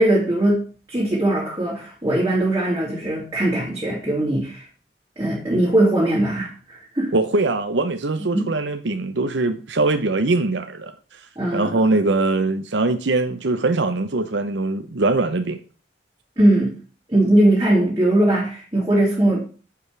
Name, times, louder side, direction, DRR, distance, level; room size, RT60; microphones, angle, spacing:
voice 1, 0.0-4.6 5.2-7.1 8.3-8.5 11.4-11.8 16.4-16.8 17.1-19.4, right 1 dB, 20° right, 2.6 m, -20 dB
voice 2, 7.1-10.9 11.5-15.6, right 2 dB, 90° right, 0.8 m, -22 dB
9.9 x 7.0 x 3.3 m
head